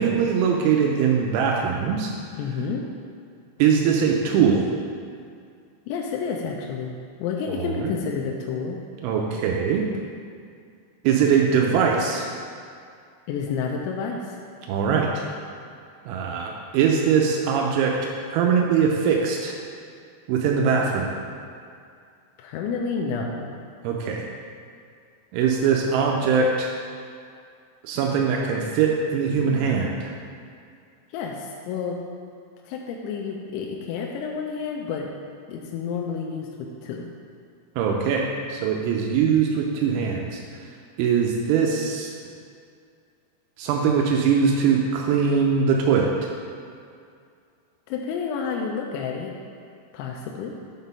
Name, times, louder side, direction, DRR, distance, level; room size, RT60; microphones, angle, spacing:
voice 1, 0.0-2.1 3.6-4.7 7.5-7.9 9.0-9.9 11.0-12.3 14.7-15.1 16.1-18.0 18.3-19.5 20.3-21.1 23.8-24.2 25.3-26.7 27.8-30.1 37.8-40.4 41.0-42.1 43.6-46.1, right 6 dB, 85° right, 0 dB, 3.0 m, -21 dB
voice 2, 2.4-2.8 5.9-6.9 7.2-8.8 13.3-14.4 22.4-23.5 31.1-32.0 32.7-35.1 35.5-37.1 47.9-49.3 49.9-50.5, left 5 dB, 85° left, 0 dB, 2.9 m, -30 dB
7.7 x 4.0 x 5.4 m, 2.3 s
omnidirectional pair, 5.4 m